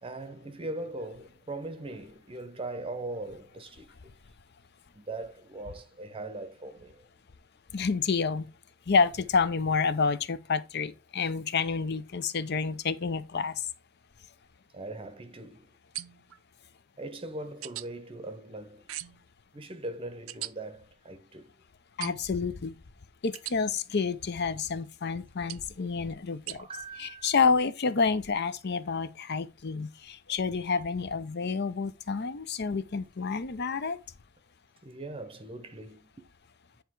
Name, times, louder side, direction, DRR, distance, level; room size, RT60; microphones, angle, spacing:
voice 1, 0.0-4.1 4.9-7.1 14.7-15.7 17.0-18.9 19.5-21.5 26.5-27.3 34.8-36.1, right 2 dB, 25° right, 0.7 m, -40 dB
voice 2, 7.7-8.5 8.9-13.7 22.0-22.8 23.2-26.6 27.0-34.0, left 5 dB, 55° left, 0.6 m, -29 dB
sound 1, 15.9-16.4 17.6-17.9 18.9-19.3 20.3-20.5 22.0-22.4 23.3-23.6 25.5-25.7 26.5-26.6, right 15 dB, 80° right, 0.4 m, -39 dB
9.6 x 3.4 x 4.6 m
head